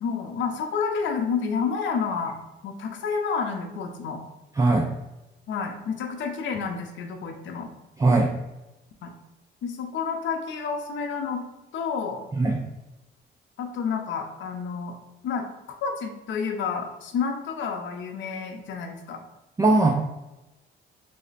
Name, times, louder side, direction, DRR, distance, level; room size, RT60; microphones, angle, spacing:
voice 1, 0.0-2.4 2.6-4.2 5.5-7.7 9.0-9.1 9.6-11.4 11.7-12.2 13.6-15.0 15.2-19.2, left 5 dB, 70° left, 3 dB, 0.6 m, -29 dB
voice 2, 4.6-4.9 8.0-8.3 12.3-12.6 19.6-19.9, right 2 dB, 15° right, 0 dB, 0.4 m, -19 dB
3.2 x 2.1 x 4.0 m, 0.98 s
cardioid pair, 90°, 20 cm